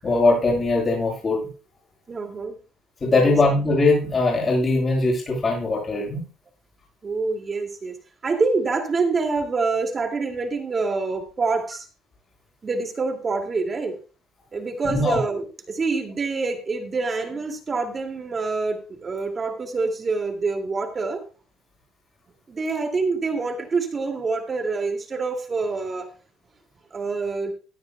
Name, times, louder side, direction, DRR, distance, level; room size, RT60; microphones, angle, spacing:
voice 1, 0.0-1.4 3.0-6.2 14.9-15.2, left 2 dB, 30° left, -2 dB, 7.7 m, -20 dB
voice 2, 2.1-2.6 3.0-3.4 7.0-8.0 8.2-11.9 12.6-14.0 14.5-21.2 22.5-26.1 26.9-27.5, right 4 dB, 30° right, 5 dB, 2.4 m, -26 dB
17.5 x 11.0 x 2.3 m, 0.34 s
cardioid pair, 110°, 0 cm